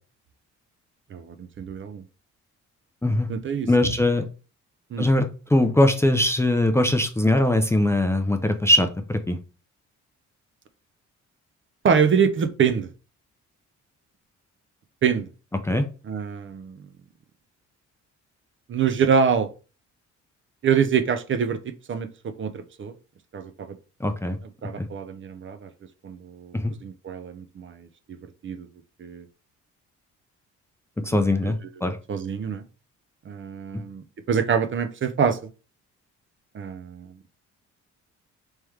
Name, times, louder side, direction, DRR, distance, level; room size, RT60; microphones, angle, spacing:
voice 1, 1.1-2.0 3.3-3.7 4.9-5.1 11.8-12.9 15.0-15.3 16.0-16.8 18.7-19.5 20.6-22.9 23.3-23.8 24.6-25.7 26.0-26.6 26.8-28.2 28.4-28.7 29.0-29.3 31.1-31.6 32.1-32.6 33.3-35.4 36.5-37.1, right 7 dB, 40° right, 11 dB, 0.5 m, -25 dB
voice 2, 3.7-4.2 5.0-9.4 15.6-15.9 24.0-24.4 24.8-24.9 26.5-26.7 31.0-32.0, left 1 dB, 10° left, 6 dB, 0.5 m, -21 dB
3.4 x 3.1 x 3.2 m, 0.34 s
cardioid pair, 90°, 30 cm